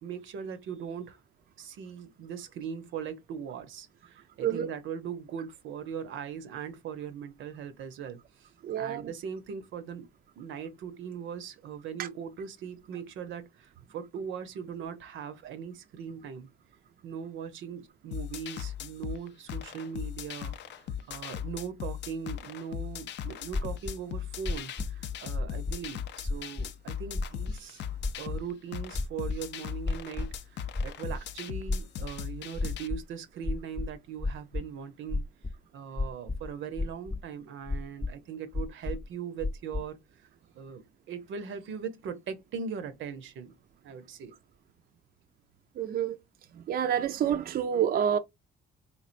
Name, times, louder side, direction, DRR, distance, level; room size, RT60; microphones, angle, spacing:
voice 1, 0.0-1.2 1.6-8.5 8.8-10.1 10.4-16.5 17.0-27.8 28.2-35.3 35.7-40.0 40.5-43.5 43.8-44.3, right 7 dB, 80° right, 0.7 m, -40 dB
voice 2, 8.6-9.1 12.0-12.1 45.8-46.2 46.7-48.2, right 9 dB, 50° right, 0.4 m, -28 dB
sound 1, 18.1-32.9, left 9 dB, 65° left, 0.4 m, -38 dB
sound 2, 23.5-23.9 24.4-24.9 25.3-25.9 26.2-26.7 27.1-27.6 28.0-28.4 28.9-29.4 29.8-30.4 30.7-31.2 31.7-32.2 32.5-33.0 33.4-34.6 35.1-35.5 36.0-36.5 36.8-37.2 37.7-38.1 38.5-39.1 39.4-39.8, left 3 dB, 20° left, 0.6 m, -31 dB
3.5 x 3.2 x 2.5 m
cardioid pair, 90°, 20 cm